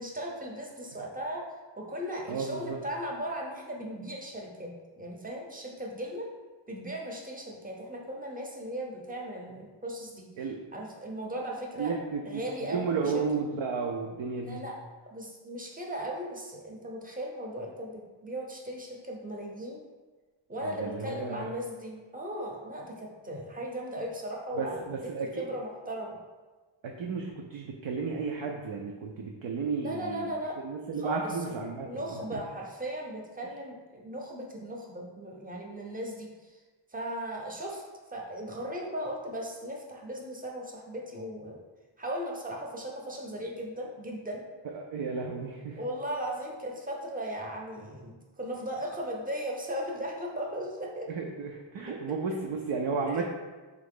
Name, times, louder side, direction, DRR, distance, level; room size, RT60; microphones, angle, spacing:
voice 1, 0.0-1.4 1.8-4.7 5.0-6.3 6.7-10.3 10.7-13.1 14.4-14.7 15.0-19.8 20.5-25.0 25.4-26.2 29.8-30.6 31.0-31.3 31.8-36.5 36.9-37.8 38.1-41.6 42.0-44.5 45.8-51.1 51.9-52.0 53.0-53.2, equal, 20° right, -1 dB, 0.7 m, -37 dB
voice 2, 2.3-2.8 10.4-10.6 11.8-14.6 20.6-21.5 24.6-25.5 26.8-30.3 30.6-32.4 44.7-45.8 51.1-53.2, right 5 dB, 75° right, 1 dB, 0.5 m, -33 dB
3.8 x 3.0 x 3.6 m, 1.3 s
wide cardioid pair, 90°, 47 cm